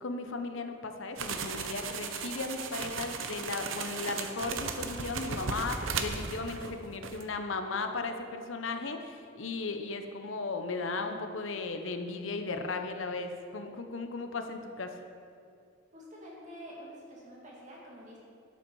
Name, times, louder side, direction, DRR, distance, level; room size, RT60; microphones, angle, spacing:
voice 1, 0.0-14.9, left 3 dB, 75° left, 6 dB, 0.9 m, -36 dB
sound 1, 1.2-6.8 7.0-7.2, right 5 dB, 80° right, 0.8 m, -36 dB
voice 2, 15.9-18.2, equal, 40° right, -4 dB, 2.5 m, -47 dB
12.0 x 8.0 x 4.8 m, 2.5 s
head